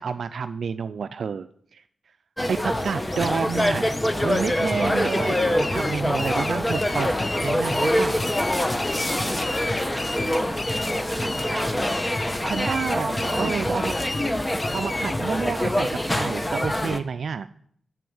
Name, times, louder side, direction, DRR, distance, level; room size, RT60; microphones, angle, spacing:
voice 1, 0.0-1.8 2.5-3.9 4.2-7.1 7.4-8.2 12.5-13.9 14.7-17.5, right 6 dB, 80° right, 10 dB, 0.4 m, -29 dB
sound 1, 2.4-17.0, left 1 dB, 15° left, 1.0 m, -25 dB
sound 2, 2.8-15.2, left 2 dB, 35° left, 0.5 m, -34 dB
voice 2, 9.1-9.9 11.2-11.7 12.4-13.6, right 2 dB, 35° right, 7 dB, 1.7 m, -36 dB
9.0 x 7.8 x 7.7 m, 0.65 s
cardioid pair, 70°, 0 cm